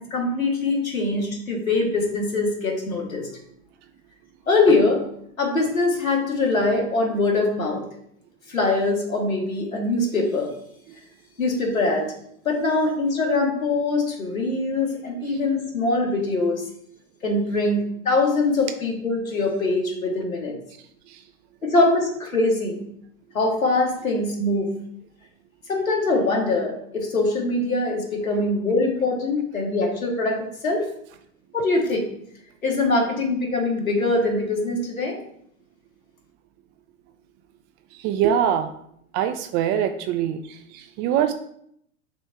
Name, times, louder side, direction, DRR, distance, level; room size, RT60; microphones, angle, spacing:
voice 1, 0.1-3.2 4.5-5.0 5.4-7.8 8.5-10.5 11.4-12.1 12.5-16.6 17.2-20.5 21.6-22.8 23.3-24.7 25.7-30.9 31.5-32.0 32.6-35.2, left 2 dB, 85° left, 0 dB, 2.1 m, -23 dB
voice 2, 38.0-38.7 39.1-40.4 41.0-41.3, right 9 dB, 30° right, 8 dB, 0.4 m, -22 dB
6.7 x 3.1 x 4.6 m, 0.70 s
figure-of-eight pair, 100°, 40 cm